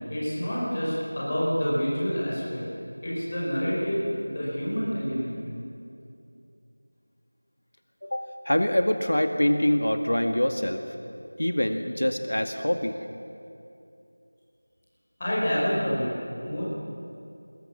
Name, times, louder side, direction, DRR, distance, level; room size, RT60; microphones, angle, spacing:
voice 1, 0.1-2.6 3.0-5.4 15.2-16.2 16.4-16.6, equal, 15° left, -7 dB, 5.5 m, -27 dB
voice 2, 8.0-10.9 11.4-13.0, left 1 dB, 85° left, 5 dB, 2.1 m, -25 dB
26.0 x 21.0 x 7.3 m, 2.7 s
figure-of-eight pair, 180°, 0 cm